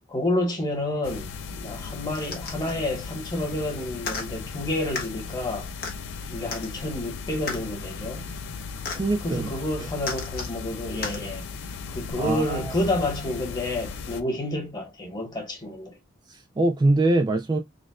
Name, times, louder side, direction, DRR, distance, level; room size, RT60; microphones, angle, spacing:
voice 1, 0.1-5.7 6.3-8.3 9.2-11.4 11.9-15.9, left 1 dB, 25° left, 1.4 m, -29 dB
sound 1, 1.0-14.2, left 5 dB, 85° left, 0.4 m, -37 dB
sound 2, 2.1-2.7 4.0-4.3 5.0-5.1 5.8-5.9 6.5-6.7 7.5-7.6 8.9-9.0 10.0-10.5 11.0-11.2 12.1-12.2, left 4 dB, 55° left, 1.1 m, -33 dB
voice 2, 8.9-9.5 12.2-12.7 16.3-17.6, right 2 dB, 25° right, 0.3 m, -23 dB
4.0 x 2.5 x 2.3 m
head